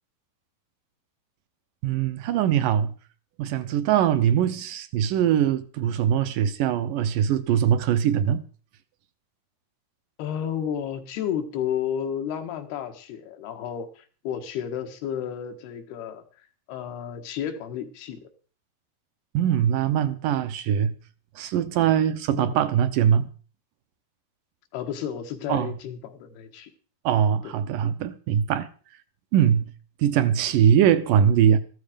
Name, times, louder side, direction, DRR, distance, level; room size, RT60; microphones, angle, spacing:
voice 1, 1.8-2.9 3.4-8.4 19.3-20.9 21.4-23.3 25.5-25.7 27.0-28.7 29.3-29.7 30.0-31.6, right 9 dB, 75° right, 2.2 m, -22 dB
voice 2, 10.2-18.2 22.3-22.6 24.7-26.7 27.4-27.6 29.5-29.6, left 9 dB, 85° left, 3.5 m, -32 dB
14.0 x 13.0 x 5.1 m
omnidirectional pair, 4.5 m